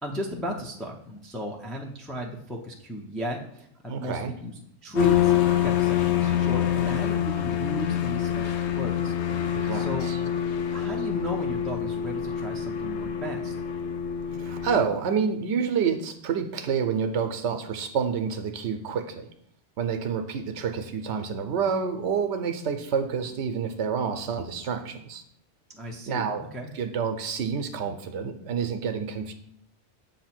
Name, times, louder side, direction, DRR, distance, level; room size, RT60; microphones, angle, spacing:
voice 1, 0.0-10.1 10.7-13.5 25.7-26.7, equal, ahead, -2 dB, 0.4 m, -35 dB
voice 2, 3.9-4.3 9.6-10.2 14.4-19.3 19.8-25.2 26.1-26.5 26.7-29.3, right 6 dB, 80° right, 7 dB, 0.9 m, -28 dB
sound 1, 5.0-14.9, left 10 dB, 80° left, 0.9 m, -26 dB
7.1 x 2.7 x 5.8 m, 0.70 s
omnidirectional pair, 1.1 m